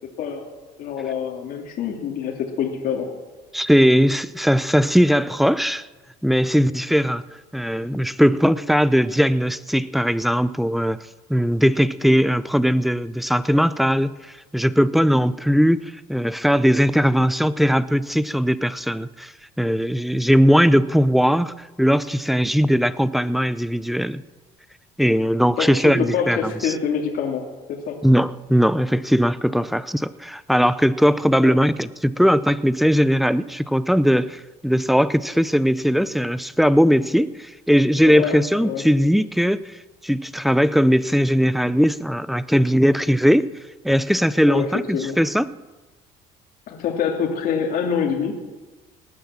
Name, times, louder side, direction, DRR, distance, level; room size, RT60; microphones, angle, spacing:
voice 1, 0.8-3.1 25.6-28.0 31.4-31.6 38.0-38.9 44.4-45.2 46.7-48.4, left 7 dB, 65° left, 0 dB, 2.6 m, -26 dB
voice 2, 3.5-5.9 6.2-7.2 7.5-11.0 11.3-19.3 19.6-24.2 25.0-26.7 28.0-39.8 40.0-43.5 43.8-45.5, equal, ahead, 16 dB, 0.6 m, -19 dB
18.5 x 9.5 x 7.4 m, 1.2 s
cardioid pair, 105°, 16 cm